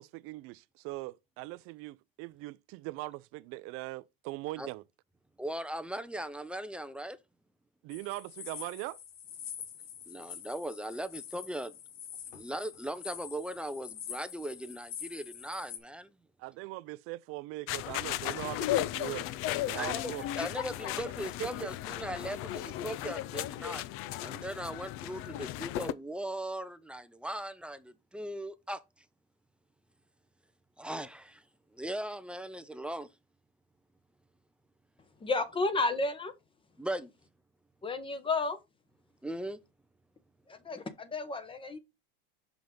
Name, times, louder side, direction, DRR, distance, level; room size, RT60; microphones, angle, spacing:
voice 1, 0.0-4.8 7.8-9.0 16.4-19.3 19.7-20.5 21.4-21.5, right 20 dB, 50° right, 0.5 m, -41 dB
voice 2, 5.4-7.2 10.1-11.7 12.3-16.1 19.7-20.1 20.4-23.9 24.2-28.8 30.8-31.4 31.7-33.1 36.8-37.1 39.2-39.6, right 1 dB, 5° right, 0.5 m, -38 dB
sound 1, 7.9-15.8, left 9 dB, 75° left, 2.2 m, -46 dB
sound 2, 17.7-25.9, left 13 dB, 50° left, 0.6 m, -35 dB
voice 3, 35.2-36.3 37.8-38.6 40.5-41.8, left 3 dB, 15° left, 1.0 m, -32 dB
6.0 x 5.3 x 3.7 m
supercardioid pair, 125°, 30 cm